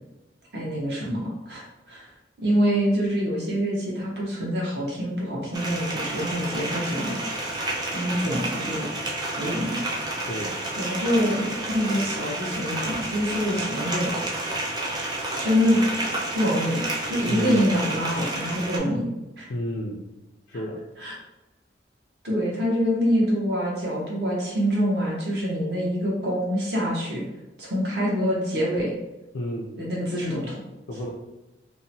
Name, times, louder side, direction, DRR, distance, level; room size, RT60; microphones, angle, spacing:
voice 1, 0.5-2.1 2.4-7.2 7.9-8.9 9.4-9.8 10.8-14.1 15.4-15.8 16.3-19.1 19.4-19.5 21.0-21.2 22.2-27.2 27.6-28.9 29.8-30.5, equal, 65° right, -4 dB, 0.9 m, -25 dB
sound 1, 5.5-18.8, right 2 dB, 25° right, 0.4 m, -30 dB
voice 2, 17.3-17.6 19.5-20.0 20.5-20.8 29.3-29.7 30.9-31.1, equal, 75° left, -4 dB, 0.4 m, -31 dB
2.7 x 2.1 x 2.7 m, 1.0 s
head